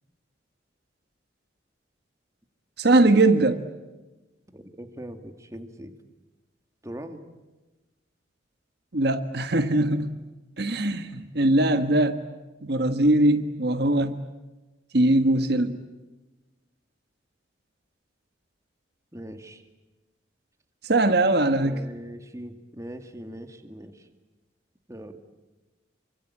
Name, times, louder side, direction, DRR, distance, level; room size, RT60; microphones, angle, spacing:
voice 1, 2.8-3.6 8.9-10.2 10.6-12.2 12.6-14.2 14.9-15.8 20.8-21.8, right 2 dB, 55° right, 8 dB, 1.4 m, -21 dB
voice 2, 4.5-6.0 6.8-7.2 19.1-19.6 21.6-24.1 24.9-25.2, right 1 dB, 15° right, 7 dB, 2.2 m, -41 dB
28.0 x 24.5 x 8.6 m, 1.1 s
head